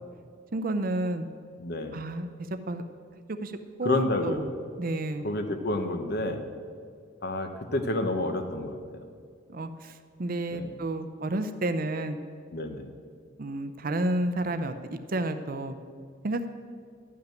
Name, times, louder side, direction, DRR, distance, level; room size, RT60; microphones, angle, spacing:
voice 1, 0.5-1.3 1.9-2.3 2.7-2.8 3.3-3.5 3.8-4.5 4.8-5.3 9.5-9.9 10.2-12.2 13.4-15.8 16.2-16.5, right 2 dB, 45° right, 9 dB, 0.6 m, -30 dB
voice 2, 1.6-2.0 3.8-4.4 5.2-6.4 7.2-9.0 10.5-10.8 12.5-12.9, left 1 dB, 50° left, 7 dB, 0.9 m, -29 dB
12.0 x 5.9 x 8.9 m, 2.1 s
head